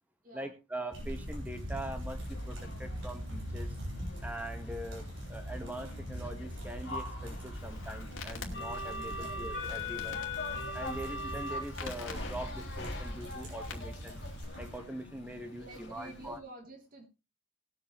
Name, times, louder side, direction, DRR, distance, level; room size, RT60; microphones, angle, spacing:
voice 1, 0.3-3.8 4.2-10.2 10.7-14.2 14.6-16.4, right 1 dB, 10° right, 5 dB, 1.8 m, -42 dB
sound 1, 0.9-14.8, equal, 75° right, 7.1 m, -42 dB
sound 2, 2.2-16.4, left 2 dB, 55° left, 2.7 m, -43 dB
Crackle, 7.5-14.4, left 3 dB, 70° left, 2.5 m, -48 dB
voice 2, 15.6-17.0, right 2 dB, 45° right, 2 dB, 3.5 m, -49 dB
19.5 x 8.0 x 3.3 m, 0.28 s
head